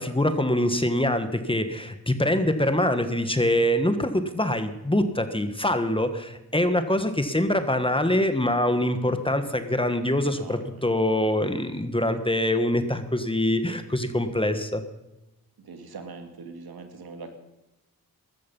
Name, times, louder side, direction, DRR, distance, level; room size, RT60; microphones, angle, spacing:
voice 1, 0.0-14.8, left 1 dB, 15° left, 9 dB, 1.5 m, -24 dB
voice 2, 10.2-10.8 11.3-11.6 15.6-17.4, right 4 dB, 80° right, 6 dB, 2.1 m, -42 dB
15.5 x 13.0 x 5.5 m, 0.96 s
cardioid pair, 65°, 37 cm